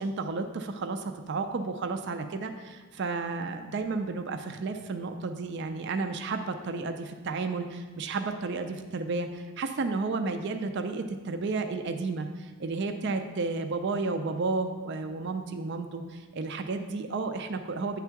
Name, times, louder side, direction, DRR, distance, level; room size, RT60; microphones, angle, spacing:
voice 1, 0.0-18.0, right 3 dB, 55° right, 7 dB, 0.4 m, -32 dB
8.9 x 3.6 x 5.7 m, 1.3 s
head